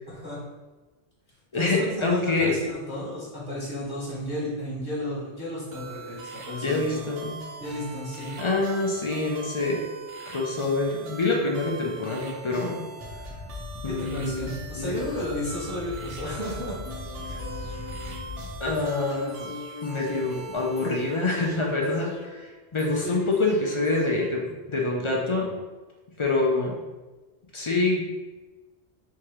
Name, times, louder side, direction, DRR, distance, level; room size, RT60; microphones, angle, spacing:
voice 1, 0.1-0.4 1.5-7.0 7.6-8.4 13.9-16.7 17.2-17.8 22.9-23.2, left 1 dB, 5° right, -8 dB, 1.3 m, -33 dB
voice 2, 1.5-2.5 6.6-7.3 8.4-9.8 10.3-12.8 13.8-14.5 14.8-15.0 18.6-19.5 19.8-25.5 26.2-26.8 27.5-28.0, left 3 dB, 40° left, -1 dB, 0.4 m, -26 dB
sound 1, 5.7-21.9, right 3 dB, 75° right, 1.2 m, -42 dB
sound 2, 13.0-18.7, left 3 dB, 10° left, 0.8 m, -39 dB
sound 3, 16.8-24.8 25.2-25.3, left 6 dB, 60° left, 0.8 m, -43 dB
3.6 x 3.0 x 4.7 m, 1.2 s
omnidirectional pair, 1.2 m